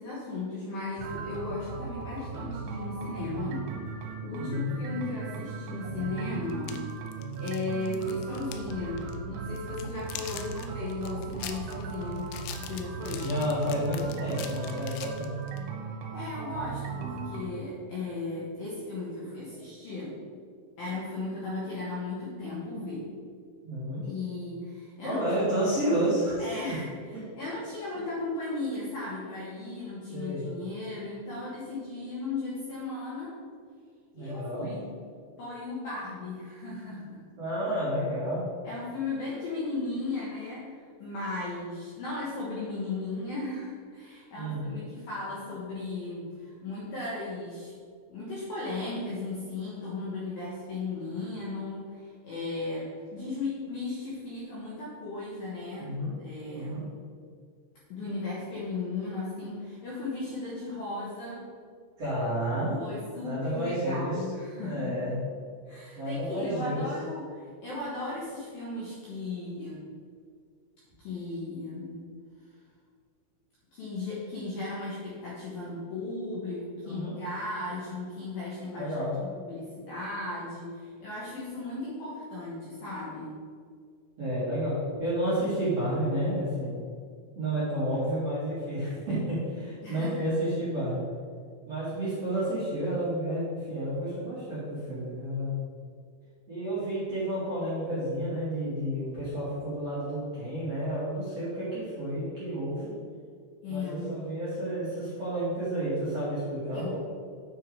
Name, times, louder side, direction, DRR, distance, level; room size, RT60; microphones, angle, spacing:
voice 1, 0.0-3.6 4.2-6.8 7.4-13.2 15.9-20.2 20.8-23.1 24.0-25.2 26.4-26.9 27.4-33.4 34.1-34.9 35.4-37.2 38.6-47.7 48.1-56.8 57.9-61.4 62.8-65.1 65.7-69.8 71.0-72.0 73.7-78.9 79.2-83.3 89.8-90.3 103.6-104.1 106.7-107.0, left 3 dB, 65° left, -8 dB, 2.4 m, -36 dB
sound 1, 1.0-17.4, right 5 dB, 80° right, 3.5 m, -38 dB
voice 2, 4.4-4.7 13.1-15.3 23.6-24.0 25.0-26.5 30.1-30.5 34.1-34.7 37.4-38.4 44.3-44.7 55.8-56.1 56.5-56.8 62.0-62.8 63.2-64.2 64.6-65.1 65.9-66.9 76.8-77.2 78.8-79.2 84.2-86.8 87.3-91.1 91.7-95.5 96.5-102.9 103.7-107.0, right 1 dB, 45° right, -12 dB, 2.1 m, -30 dB
sound 2, 6.5-8.7 9.0-9.2 9.6-15.6, left 10 dB, 85° left, 3.3 m, -43 dB
9.1 x 4.7 x 4.7 m, 2.1 s
omnidirectional pair, 6.0 m